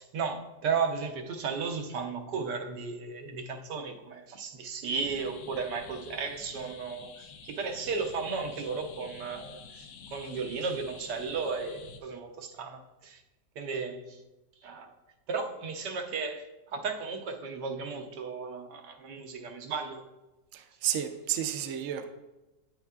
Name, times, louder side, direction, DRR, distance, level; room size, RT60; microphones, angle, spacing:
voice 1, 0.0-13.2 13.6-14.2 14.6-14.9 15.3-20.0, right 5 dB, 80° right, 4 dB, 1.5 m, -35 dB
sound 1, 4.8-12.0, left 5 dB, 70° left, 1.1 m, -49 dB
voice 2, 20.5-22.1, right 11 dB, 65° right, 6 dB, 0.9 m, -31 dB
9.3 x 9.0 x 2.4 m, 1.0 s
omnidirectional pair, 1.8 m